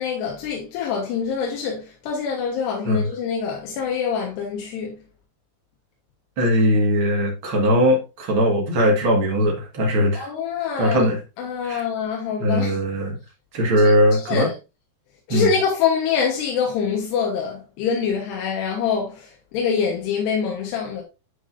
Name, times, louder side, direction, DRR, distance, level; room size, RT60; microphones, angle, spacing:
voice 1, 0.0-5.0 10.1-11.0 11.4-12.8 13.8-14.5 15.3-21.0, left 6 dB, 90° left, 3.4 m, -25 dB
voice 2, 6.4-10.3 10.8-11.2 11.6-11.8 12.4-13.2 13.5-14.5 15.3-15.5, equal, 45° right, 1.8 m, -19 dB
10.5 x 5.1 x 2.6 m
omnidirectional pair, 4.7 m